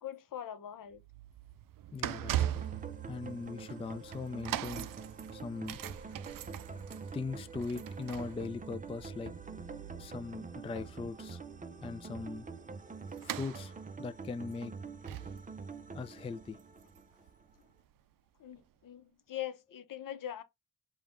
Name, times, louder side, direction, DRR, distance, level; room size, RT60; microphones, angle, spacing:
voice 1, 0.0-1.0 18.4-20.4, left 11 dB, 60° left, 0.8 m, -42 dB
sound 1, 0.9-17.9 18.6-18.7, right 12 dB, 60° right, 0.5 m, -42 dB
voice 2, 1.9-2.6 3.1-4.9 5.3-5.8 7.1-9.3 10.0-11.4 11.8-12.5 13.2-14.7 15.9-16.6, left 4 dB, 15° left, 0.3 m, -40 dB
sound 2, 2.4-17.5, right 4 dB, 20° right, 0.6 m, -46 dB
5.0 x 2.4 x 3.5 m
cardioid pair, 75°, 37 cm